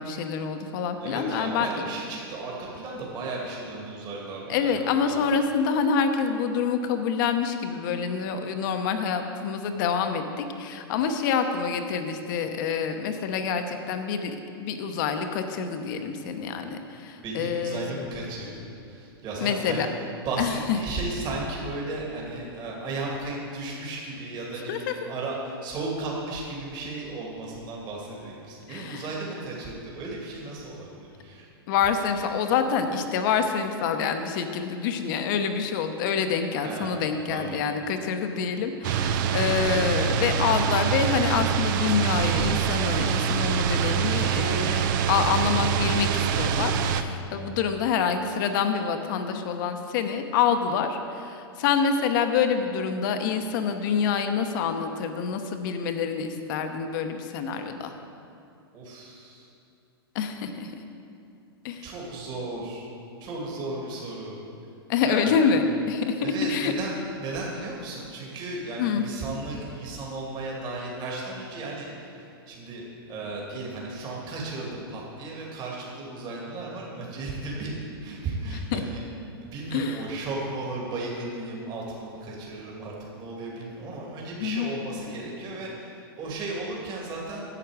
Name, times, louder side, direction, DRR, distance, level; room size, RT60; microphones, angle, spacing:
voice 1, 0.0-1.8 4.5-17.8 19.4-19.9 20.4-20.5 24.7-24.9 28.7-29.0 31.7-57.9 60.1-60.7 61.6-61.8 64.9-66.7 68.8-69.1 78.5-78.8 79.7-80.0 84.4-84.7, left 6 dB, 55° left, 7 dB, 0.9 m, -27 dB
voice 2, 1.0-5.2 17.2-19.9 20.2-31.5 36.6-36.9 37.3-37.6 58.7-59.5 61.8-62.9 63.2-64.4 65.0-65.5 66.2-77.7 78.0-79.0 79.4-87.5, right 2 dB, 35° right, -3 dB, 2.3 m, -35 dB
sound 1, 38.8-47.0, right 8 dB, 50° right, 0.6 m, -25 dB
11.0 x 7.7 x 4.9 m, 2.6 s
hypercardioid pair, 120°, 13 cm